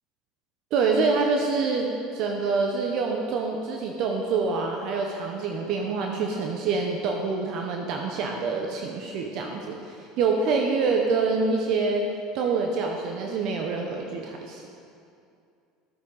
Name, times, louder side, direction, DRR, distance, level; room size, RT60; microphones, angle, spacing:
voice 1, 0.7-12.1 12.3-14.6, right 4 dB, 60° right, 2 dB, 0.9 m, -26 dB
11.5 x 8.3 x 4.0 m, 2.5 s
supercardioid pair, 90°, 0 cm